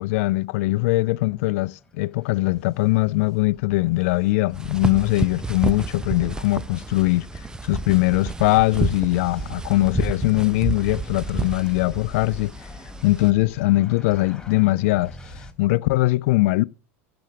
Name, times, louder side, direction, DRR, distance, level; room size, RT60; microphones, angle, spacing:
voice 1, 0.0-7.3 7.6-12.5 13.0-15.1 15.6-16.6, left 20 dB, 65° left, 0.5 m, -21 dB
sound 1, 1.1-15.5, left 2 dB, 10° left, 2.8 m, -45 dB
sound 2, 4.5-13.3, right 3 dB, 10° right, 0.6 m, -30 dB
16.0 x 7.0 x 6.1 m
hypercardioid pair, 90°, 8 cm